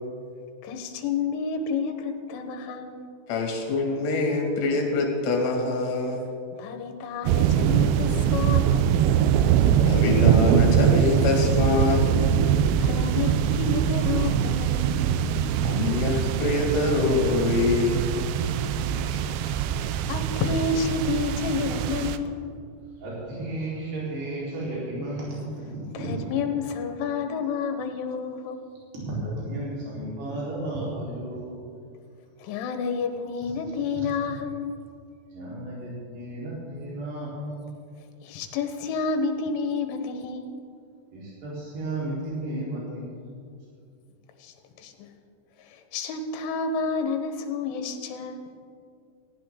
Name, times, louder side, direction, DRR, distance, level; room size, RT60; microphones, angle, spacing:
voice 1, 0.6-3.0 6.6-8.8 12.8-15.2 19.1-19.2 19.8-22.4 26.0-28.6 32.4-34.8 38.2-40.6 44.4-45.1 45.6-48.4, left 4 dB, 80° left, 6 dB, 3.6 m, -30 dB
voice 2, 3.3-6.3 9.7-12.3 15.6-18.2, left 3 dB, 65° left, 1 dB, 4.1 m, -25 dB
sound 1, 7.3-22.2, right 9 dB, 85° right, 2.7 m, -23 dB
voice 3, 23.0-26.4 28.9-31.5 34.0-34.1 35.3-37.6 41.1-43.4, right 1 dB, 60° right, -7 dB, 6.2 m, -33 dB
18.0 x 15.5 x 3.9 m, 2.4 s
omnidirectional pair, 5.6 m